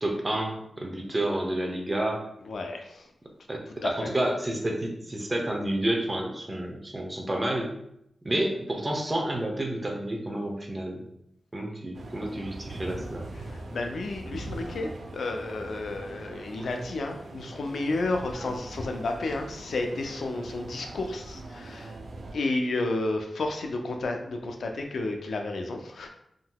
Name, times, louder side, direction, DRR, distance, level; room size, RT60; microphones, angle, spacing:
voice 1, 0.0-2.2 3.5-7.7 8.2-11.0 11.5-13.3 18.4-18.5, right 1 dB, 25° right, 1 dB, 0.6 m, -30 dB
voice 2, 2.4-3.1 3.8-4.1 13.3-22.0 22.3-26.1, left 2 dB, 85° left, 4 dB, 0.4 m, -31 dB
sound 1, 11.9-22.3, right 2 dB, 80° right, 0.4 m, -42 dB
3.7 x 2.7 x 2.2 m, 0.76 s
wide cardioid pair, 95°, 0 cm